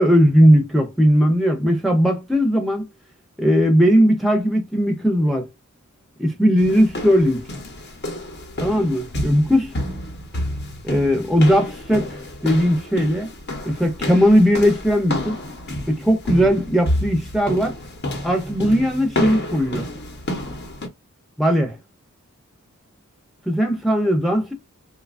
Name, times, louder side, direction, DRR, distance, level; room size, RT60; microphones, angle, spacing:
voice 1, 0.0-2.9 3.4-5.5 6.2-7.5 8.6-9.7 10.8-13.3 13.7-15.3 15.9-17.8 18.2-19.9 21.4-21.8 23.5-24.5, equal, ahead, 0.5 m, -18 dB
sound 1, 6.6-20.9, left 1 dB, 50° left, 0.8 m, -29 dB
2.8 x 2.3 x 2.3 m
head